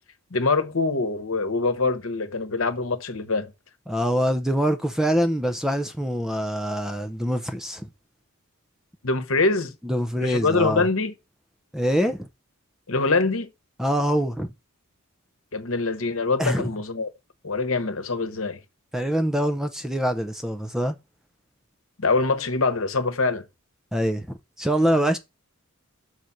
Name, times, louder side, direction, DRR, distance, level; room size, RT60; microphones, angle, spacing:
voice 1, 0.3-3.5 9.0-9.7 10.2-11.1 12.9-13.5 15.5-17.1 17.4-18.6 22.0-23.4, left 3 dB, 65° left, 1.1 m, -24 dB
voice 2, 3.9-7.9 9.8-10.9 11.7-12.3 13.8-14.5 16.4-16.7 18.9-20.9 23.9-24.3 24.6-25.2, equal, ahead, 0.6 m, -24 dB
6.4 x 4.1 x 5.9 m
head